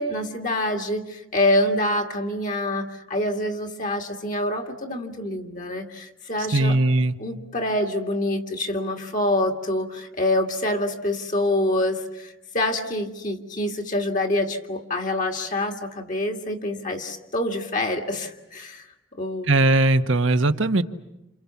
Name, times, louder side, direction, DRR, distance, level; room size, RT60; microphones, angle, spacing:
voice 1, 0.0-6.8 7.2-18.9 19.2-19.5, left 1 dB, 40° left, 3 dB, 2.3 m, -26 dB
voice 2, 6.5-7.1 19.5-20.8, right 2 dB, 70° right, 8 dB, 1.2 m, -19 dB
29.0 x 28.5 x 7.2 m, 0.90 s
head